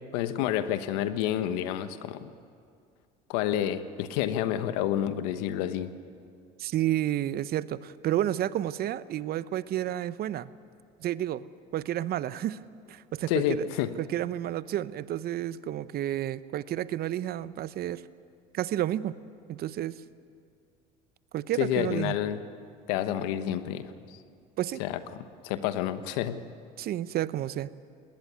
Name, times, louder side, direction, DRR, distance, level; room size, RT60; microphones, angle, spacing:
voice 1, 0.1-2.3 3.3-5.9 13.3-13.9 21.6-22.4 22.9-24.2 24.8-26.4, left 11 dB, 80° left, 11 dB, 1.2 m, -29 dB
voice 2, 6.6-10.5 11.0-11.5 11.7-12.6 12.9-13.7 14.0-18.0 18.5-19.2 19.5-20.0 21.3-22.2 24.6-24.8 26.8-27.7, right 12 dB, 55° right, 16 dB, 0.8 m, -30 dB
19.5 x 19.0 x 9.5 m, 2.4 s
supercardioid pair, 85°, 20 cm